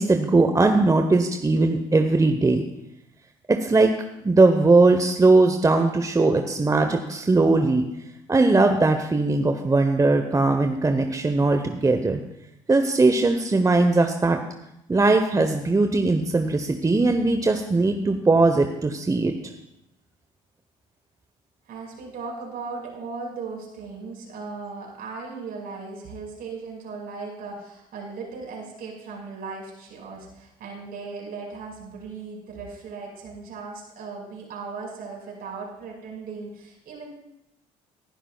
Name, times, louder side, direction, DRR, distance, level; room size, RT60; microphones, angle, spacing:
voice 1, 0.0-2.6 3.5-3.9 4.2-7.8 8.3-12.2 12.7-14.4 14.9-19.3, right 3 dB, 20° right, 6 dB, 1.1 m, -19 dB
voice 2, 21.7-37.1, right 4 dB, 60° right, -1 dB, 5.4 m, -37 dB
20.0 x 11.5 x 2.4 m, 0.83 s
hypercardioid pair, 60°, 18 cm